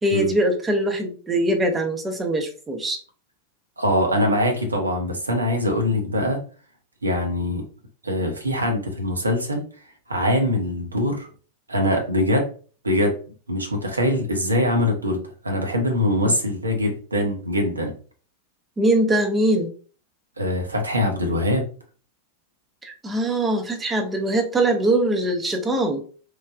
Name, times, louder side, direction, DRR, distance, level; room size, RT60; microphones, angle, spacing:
voice 1, 0.0-3.0 18.8-19.7 22.8-26.0, right 1 dB, 15° right, 4 dB, 0.6 m, -22 dB
voice 2, 3.8-6.4 7.0-7.7 8.0-9.6 10.1-11.3 11.7-12.5 12.8-13.1 13.5-17.9 20.4-21.7, left 1 dB, 80° right, 2 dB, 0.7 m, -23 dB
3.1 x 2.1 x 2.4 m, 0.40 s
figure-of-eight pair, 90°, 0 cm